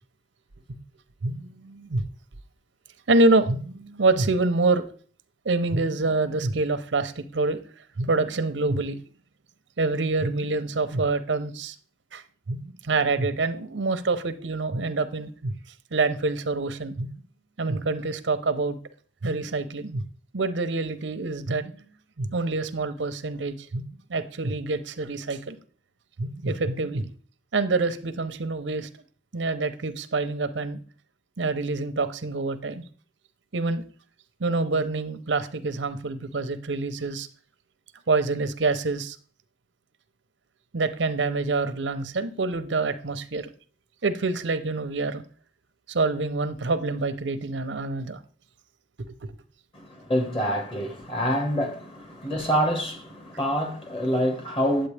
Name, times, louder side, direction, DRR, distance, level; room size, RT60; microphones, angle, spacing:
voice 1, 1.2-2.1 3.1-4.8 5.4-7.6 8.0-9.0 9.8-11.8 12.1-15.5 15.9-17.1 17.6-18.8 19.2-20.0 20.3-21.8 22.2-23.8 24.1-25.6 26.2-27.1 27.5-28.9 29.3-30.8 31.4-32.8 33.5-33.8 34.4-37.3 38.1-39.2 40.7-43.5 44.0-45.2 45.9-48.2 49.0-49.1, right 3 dB, 90° right, 0.7 m, -26 dB
voice 2, 49.7-54.9, equal, 30° left, 1.7 m, -26 dB
9.6 x 7.7 x 3.4 m
head